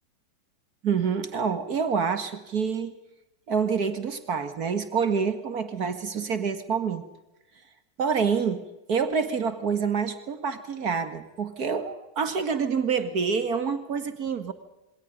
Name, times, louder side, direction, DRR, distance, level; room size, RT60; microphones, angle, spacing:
voice 1, 0.8-3.0 3.5-7.1 8.0-8.6 8.9-14.5, right 6 dB, 40° right, 11 dB, 1.5 m, -27 dB
27.5 x 21.0 x 5.3 m, 1.0 s
figure-of-eight pair, 90°, 0 cm